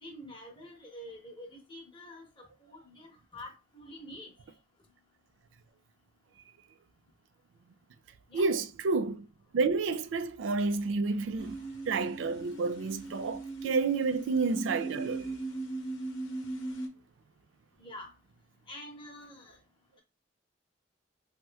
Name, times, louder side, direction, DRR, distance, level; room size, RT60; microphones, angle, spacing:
voice 1, 0.0-3.1 3.3-4.3 8.3-8.5 17.8-18.1 18.7-19.6, left 1 dB, 25° left, 0.9 m, -47 dB
voice 2, 8.3-9.3 9.5-11.6 11.9-15.4, right 4 dB, 80° right, 0.3 m, -30 dB
sound 1, 11.4-16.9, right 3 dB, 85° left, 0.8 m, -39 dB
3.0 x 2.9 x 2.3 m
head